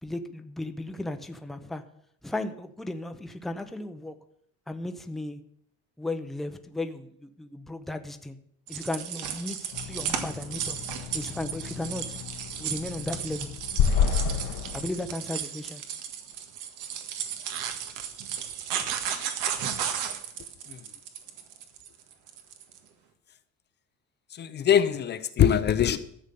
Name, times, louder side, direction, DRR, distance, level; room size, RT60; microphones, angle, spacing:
voice 1, 0.0-1.8 2.2-4.2 4.7-5.4 6.0-8.4 8.7-10.8 11.1-12.2 12.6-13.5 14.7-15.8, left 2 dB, ahead, 7 dB, 0.7 m, -35 dB
sound 1, 8.7-22.8, right 9 dB, 80° right, 1.9 m, -34 dB
sound 2, 9.7-14.9, left 7 dB, 85° left, 1.3 m, -30 dB
voice 2, 24.4-26.0, left 9 dB, 35° left, 12 dB, 0.7 m, -22 dB
13.0 x 8.1 x 7.0 m, 0.68 s
cardioid pair, 160°, 31 cm